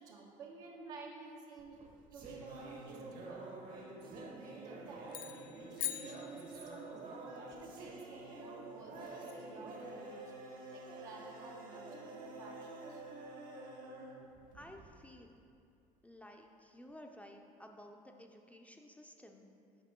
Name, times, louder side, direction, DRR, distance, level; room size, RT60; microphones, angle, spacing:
voice 1, 0.0-3.5 4.0-10.3 10.7-13.0, right 3 dB, 75° right, -2 dB, 1.3 m, -53 dB
sound 1, 1.6-15.0, right 2 dB, 50° right, 1.4 m, -48 dB
sound 2, 5.1-7.0, left 11 dB, 55° left, 0.5 m, -43 dB
voice 2, 14.5-15.3 16.0-19.5, left 1 dB, 10° left, 2 dB, 0.6 m, -54 dB
8.4 x 5.3 x 3.7 m, 2.5 s
hypercardioid pair, 65°, 18 cm